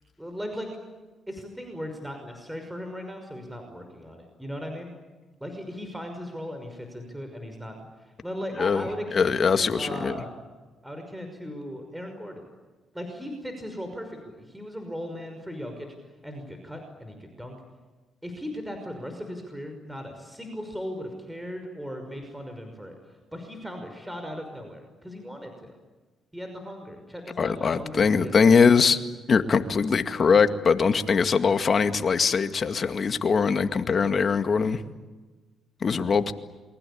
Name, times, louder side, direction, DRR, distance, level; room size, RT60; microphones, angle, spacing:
voice 1, 0.2-0.7 1.3-4.9 5.4-10.3 10.8-12.4 12.9-15.9 16.2-17.5 18.2-23.0 23.3-25.8 26.3-28.7, equal, 5° right, 5 dB, 5.8 m, -37 dB
voice 2, 8.6-10.1 27.4-29.0 29.3-34.8 35.8-36.3, left 5 dB, 45° left, 9 dB, 2.1 m, -22 dB
28.0 x 24.0 x 8.7 m, 1.3 s
cardioid pair, 75°, 0 cm